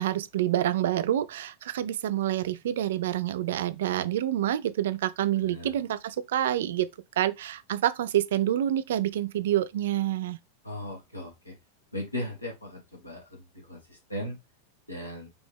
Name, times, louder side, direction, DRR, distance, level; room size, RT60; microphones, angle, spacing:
voice 1, 0.0-6.9 7.2-10.4, right 12 dB, 60° right, 0.4 m, -27 dB
voice 2, 5.4-5.7 10.6-11.5 11.9-14.3 14.9-15.3, left 1 dB, 85° left, 1.7 m, -37 dB
5.3 x 3.0 x 3.4 m
figure-of-eight pair, 90°, 0 cm